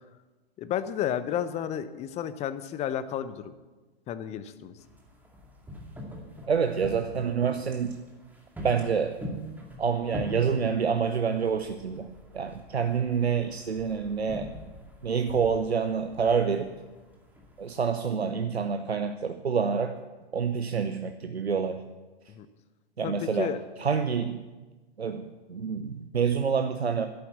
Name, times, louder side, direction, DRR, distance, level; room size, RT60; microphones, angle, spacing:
voice 1, 0.6-3.5 4.1-4.7 22.3-22.5 23.0-23.6, left 10 dB, 20° left, 13 dB, 0.7 m, -32 dB
sound 1, 4.8-17.8, equal, 5° right, 2.1 m, -44 dB
voice 2, 6.5-8.0 8.6-9.2 9.8-12.1 12.3-14.5 15.0-16.7 17.6-20.0 20.3-21.8 23.0-24.4 25.0-27.1, right 6 dB, 85° right, 8 dB, 0.8 m, -27 dB
11.5 x 8.6 x 8.1 m, 1.2 s
figure-of-eight pair, 110°, 31 cm